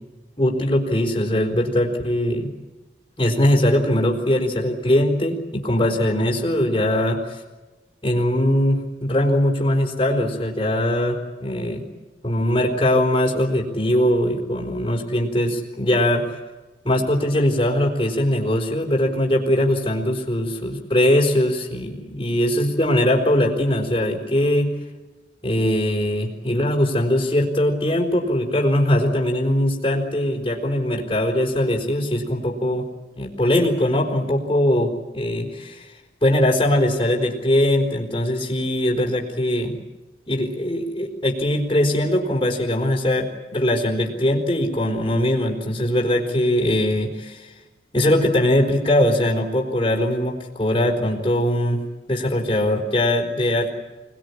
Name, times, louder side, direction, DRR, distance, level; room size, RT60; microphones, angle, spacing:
voice 1, 0.4-2.5 3.2-7.4 8.0-11.8 12.2-16.3 16.8-24.7 25.4-32.9 33.2-35.9 36.2-39.7 40.3-47.5 47.9-51.8 52.1-53.7, left 1 dB, 25° left, -5 dB, 4.4 m, -21 dB
26.5 x 20.5 x 9.9 m, 1.2 s
head